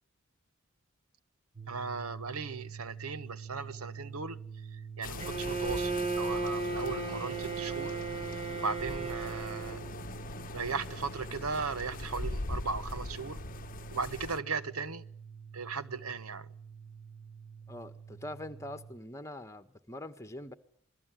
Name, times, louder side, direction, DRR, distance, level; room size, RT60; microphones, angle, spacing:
sound 1, 1.5-18.9, right 6 dB, 55° right, 6.3 m, -46 dB
voice 1, 1.7-4.4 4.7-8.0 8.6-9.8 10.5-13.4 13.9-15.0 15.5-16.5, right 4 dB, 85° right, 1.3 m, -37 dB
sound 2, 5.0-14.4, left 2 dB, 40° left, 1.0 m, -41 dB
Bowed string instrument, 5.2-9.9, right 3 dB, 30° right, 2.2 m, -35 dB
voice 2, 17.7-20.5, left 1 dB, 15° left, 1.9 m, -43 dB
27.5 x 20.5 x 9.5 m
head